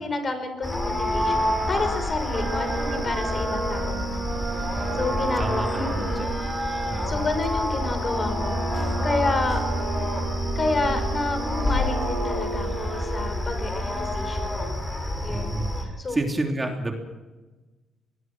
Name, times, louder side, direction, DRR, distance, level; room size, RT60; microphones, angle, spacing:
voice 1, 0.0-4.3 5.0-6.2 7.1-9.6 10.6-14.5 15.2-16.2, left 3 dB, 35° left, 7 dB, 5.5 m, -30 dB
sound 1, 0.6-15.8, left 1 dB, 15° left, 6.1 m, -28 dB
sound 2, 2.3-13.3, right 5 dB, 55° right, 2.4 m, -34 dB
voice 2, 4.7-5.1 5.4-6.4 6.9-7.3 15.3-15.7 16.1-16.9, right 2 dB, 20° right, 2 dB, 3.4 m, -30 dB
24.5 x 20.5 x 6.2 m, 1.2 s
cardioid pair, 90°, 0 cm